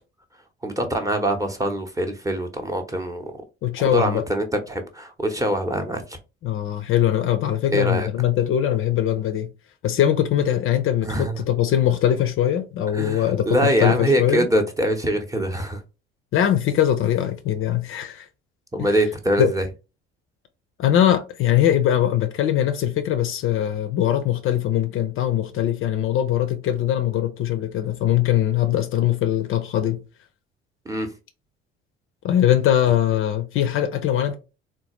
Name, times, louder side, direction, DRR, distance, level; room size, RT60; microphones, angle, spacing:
voice 1, 0.6-3.4 3.8-6.2 7.7-8.1 11.0-11.4 12.9-15.8 18.7-19.7 30.9-31.1, right 1 dB, 10° right, 0.8 m, -24 dB
voice 2, 3.6-4.2 6.4-9.5 9.8-14.5 16.3-18.3 18.8-18.9 19.4-19.5 20.8-30.0 32.2-34.3, left 11 dB, 45° left, 0.5 m, -21 dB
3.8 x 2.3 x 2.9 m
figure-of-eight pair, 55°, 31 cm